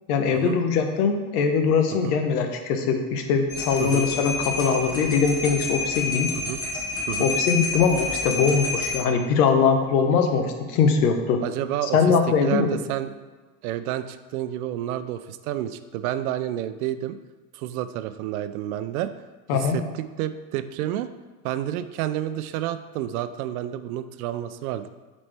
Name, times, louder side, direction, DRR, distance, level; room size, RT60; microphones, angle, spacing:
voice 1, 0.1-6.3 7.2-11.4 11.8-12.7 19.5-19.8, left 5 dB, 85° left, 5 dB, 1.0 m, -22 dB
sound 1, 3.5-9.0, left 3 dB, 10° left, 0.5 m, -29 dB
voice 2, 11.4-12.1 12.4-13.1 13.6-17.2 17.5-19.1 19.5-21.1 21.4-24.9, right 12 dB, 75° right, 12 dB, 0.5 m, -30 dB
7.2 x 4.3 x 3.4 m, 1.3 s
supercardioid pair, 165°, 44 cm